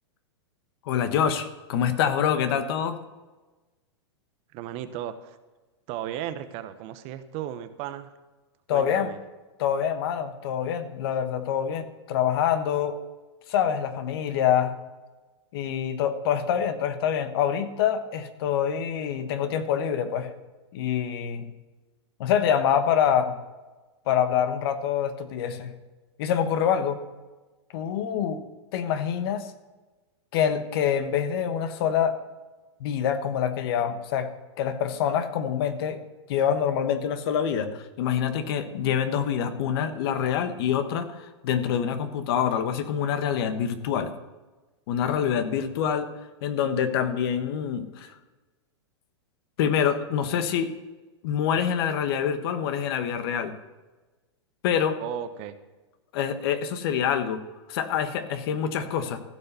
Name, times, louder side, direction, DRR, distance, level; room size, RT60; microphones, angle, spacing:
voice 1, 0.8-3.0 8.7-9.1 9.6-13.0 13.5-14.7 15.5-20.3 20.7-21.5 22.2-23.4 24.1-25.7 26.2-27.0 27.7-28.4 28.7-29.5 30.3-32.2 32.8-34.3 34.6-36.0 36.3-44.1 44.9-46.1 46.4-48.2 49.6-50.7 51.2-53.5 54.6-55.0 56.1-57.4 57.7-59.2, left 8 dB, 55° left, 9 dB, 1.3 m, -26 dB
voice 2, 4.5-5.4 5.9-8.1 8.7-9.2 55.0-55.6, right 11 dB, 40° right, 11 dB, 0.9 m, -35 dB
15.5 x 5.6 x 6.8 m, 1.2 s
hypercardioid pair, 120°, 15 cm